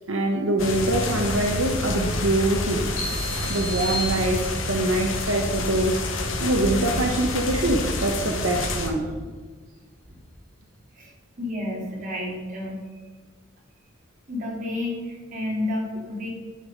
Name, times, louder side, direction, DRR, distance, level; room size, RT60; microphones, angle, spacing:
voice 1, 0.1-2.9 3.5-6.0 6.4-9.1, right 1 dB, 80° right, 1 dB, 1.2 m, -24 dB
sound 1, 0.6-8.9, left 2 dB, 75° left, 1.5 m, -28 dB
sound 2, 3.0-4.9, right 1 dB, 40° left, 2.9 m, -33 dB
voice 2, 10.9-12.8 14.3-16.3, left 1 dB, 40° right, -3 dB, 3.1 m, -31 dB
10.0 x 7.1 x 5.3 m, 1.4 s
head